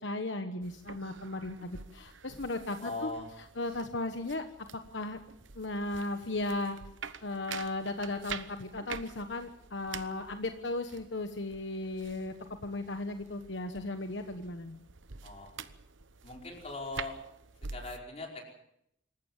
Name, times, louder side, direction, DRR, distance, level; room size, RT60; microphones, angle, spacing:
voice 1, 0.0-3.1 3.4-4.4 4.9-5.2 5.5-6.8 7.0-12.3 12.6-14.8, left 2 dB, 75° left, 7 dB, 1.3 m, -36 dB
sound 1, 0.6-18.0, right 6 dB, 85° right, 1.0 m, -47 dB
voice 2, 2.8-3.3 15.2-15.5 16.2-17.2 17.7-18.5, left 3 dB, 35° left, 1 dB, 5.1 m, -40 dB
26.0 x 14.5 x 7.3 m, 0.76 s
head